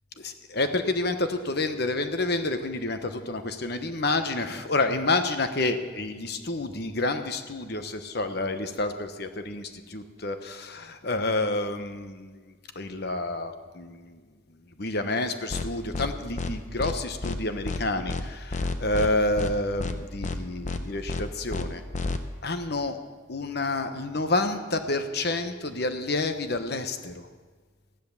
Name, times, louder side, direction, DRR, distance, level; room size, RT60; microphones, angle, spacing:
voice 1, 0.2-12.4 12.7-14.2 14.8-21.8 22.4-23.0 23.3-27.1, left 2 dB, 50° left, 8 dB, 1.1 m, -29 dB
sound 1, 15.5-15.6 15.9-16.1 16.4-16.5 16.8-16.9 17.2-17.4 17.6-17.8 18.1-18.2 18.5-19.1 19.4-19.5 19.8-19.9 20.2-20.4 20.6-20.8 21.1-21.2 21.5-21.6 21.9-22.2, left 3 dB, 35° left, 0.8 m, -30 dB
14.0 x 10.5 x 7.1 m, 1.5 s
head